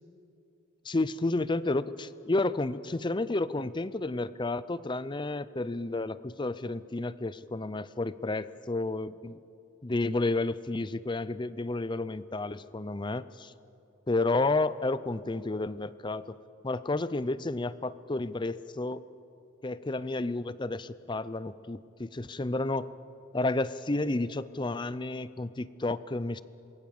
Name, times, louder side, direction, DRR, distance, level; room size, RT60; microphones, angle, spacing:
voice 1, 0.8-9.4 9.8-13.5 14.1-16.4 16.6-19.0 19.6-22.9 23.3-26.4, left 2 dB, 20° left, 16 dB, 0.5 m, -31 dB
27.5 x 22.0 x 7.2 m, 2.7 s
head